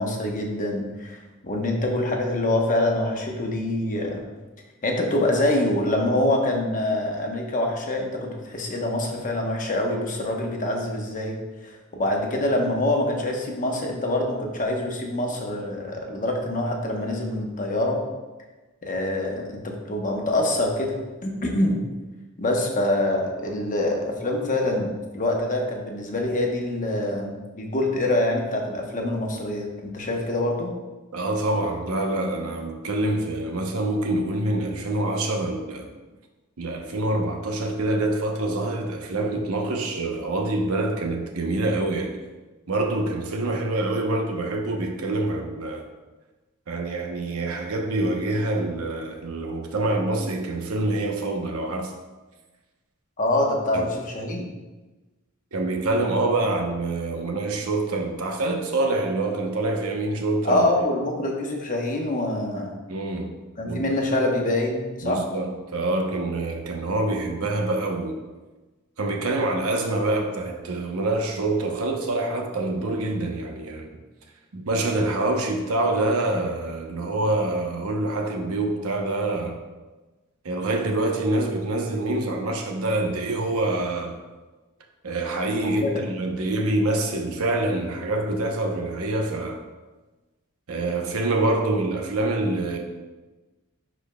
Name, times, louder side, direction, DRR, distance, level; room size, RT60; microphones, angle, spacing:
voice 1, 0.0-4.2 4.8-11.4 11.6-18.0 18.8-21.0 21.2-21.8 22.4-30.7 53.2-54.5 60.4-62.7 63.6-65.2 85.8-86.0, left 1 dB, 40° left, 1 dB, 1.0 m, -25 dB
voice 2, 31.1-35.9 36.6-42.2 42.7-45.9 46.7-51.9 53.7-53.9 55.5-60.7 62.9-63.3 63.6-63.9 65.0-68.2 69.0-74.0 74.5-79.6 80.4-84.2 85.0-89.6 90.7-92.8, right 2 dB, 85° right, 2 dB, 0.9 m, -26 dB
10.0 x 4.4 x 2.3 m, 1.2 s
head